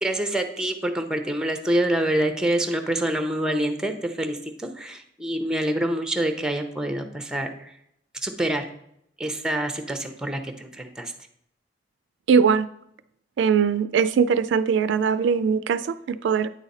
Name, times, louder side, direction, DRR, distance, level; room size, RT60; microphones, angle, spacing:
voice 1, 0.0-7.7 8.2-8.7 9.2-11.1, right 1 dB, 5° right, 6 dB, 0.6 m, -26 dB
voice 2, 12.3-12.7 13.4-16.5, right 6 dB, 75° right, 14 dB, 0.3 m, -21 dB
9.1 x 4.0 x 4.1 m, 0.74 s
head